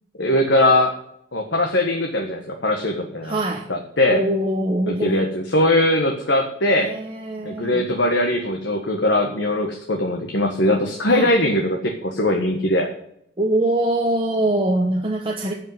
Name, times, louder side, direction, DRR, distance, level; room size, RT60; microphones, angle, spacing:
voice 1, 0.2-0.9 1.3-3.4 3.7-4.2 4.9-6.9 7.4-12.9, left 1 dB, 60° left, 2 dB, 1.5 m, -20 dB
voice 2, 3.2-3.7 4.1-5.2 6.8-7.9 11.1-11.3 13.4-15.5, right 1 dB, 25° right, 0 dB, 1.2 m, -23 dB
12.5 x 5.6 x 7.8 m, 0.73 s
head